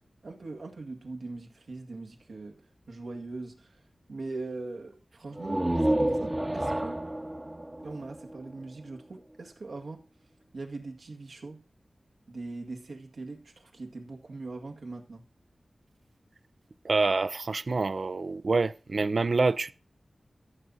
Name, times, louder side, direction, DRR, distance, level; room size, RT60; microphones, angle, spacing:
voice 1, 0.2-3.8 4.1-7.0 7.8-10.0 10.5-11.6 12.3-15.2, right 3 dB, 85° right, 2.0 m, -41 dB
sound 1, 5.3-9.0, right 1 dB, 20° right, 0.8 m, -30 dB
voice 2, 16.8-19.7, right 3 dB, 60° right, 0.4 m, -26 dB
14.0 x 6.2 x 4.1 m
wide cardioid pair, 80°, 0 cm